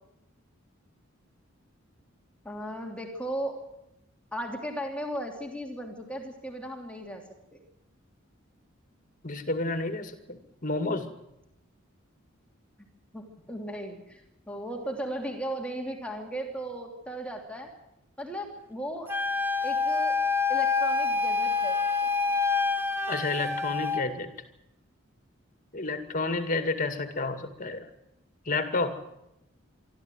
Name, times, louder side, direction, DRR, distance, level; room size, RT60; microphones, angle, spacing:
voice 1, 2.4-3.6 4.3-7.2 7.5-7.6 13.1-14.2 14.5-17.7 18.2-19.1 19.6-20.2 20.5-22.1, right 1 dB, 5° left, 2 dB, 3.0 m, -36 dB
voice 2, 9.2-11.1 23.1-24.3 25.7-27.9 28.5-29.0, left 3 dB, 40° left, 8 dB, 2.3 m, -30 dB
Wind instrument woodwind instrument, 19.1-24.1, left 4 dB, 10° right, 1.2 m, -27 dB
25.5 x 13.0 x 9.3 m, 0.84 s
head